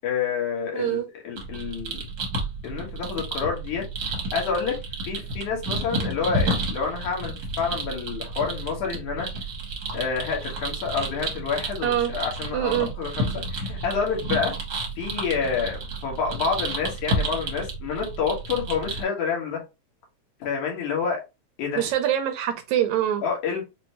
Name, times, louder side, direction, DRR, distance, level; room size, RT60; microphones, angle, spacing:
voice 1, 0.0-1.0 1.2-2.0 2.6-3.8 4.3-4.8 5.0-9.3 9.9-14.5 15.0-19.6 20.4-21.2 21.6-21.9 23.2-23.6, left 6 dB, 80° left, 2.8 m, -28 dB
voice 2, 0.7-1.1 11.8-12.1 12.5-12.9 21.7-23.2, right 11 dB, 80° right, 1.8 m, -24 dB
sound 1, 1.4-19.0, right 2 dB, 60° right, 1.0 m, -31 dB
6.0 x 2.2 x 2.9 m
omnidirectional pair, 3.4 m